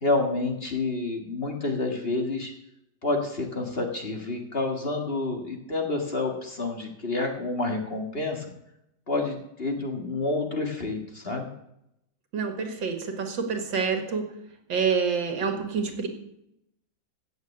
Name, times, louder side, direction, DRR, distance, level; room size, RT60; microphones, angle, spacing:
voice 1, 0.0-2.5 3.0-8.5 9.1-11.5, left 2 dB, 30° left, 2 dB, 1.9 m, -29 dB
voice 2, 12.3-14.2 14.7-16.1, right 5 dB, 80° right, 5 dB, 2.6 m, -27 dB
16.0 x 6.7 x 8.2 m, 0.81 s
omnidirectional pair, 2.0 m